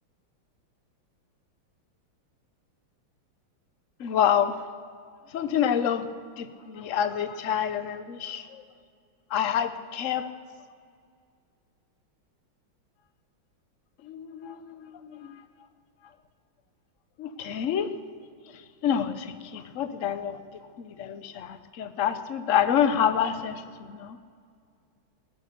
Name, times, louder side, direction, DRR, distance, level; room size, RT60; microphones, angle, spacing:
voice 1, 4.0-4.6 5.3-6.1 6.4-8.6 9.3-10.3 14.1-15.4 17.2-17.9 18.8-20.4 20.8-23.6 23.9-24.2, left 9 dB, 55° left, 10 dB, 0.9 m, -27 dB
19.0 x 11.5 x 6.7 m, 2.2 s
omnidirectional pair, 2.2 m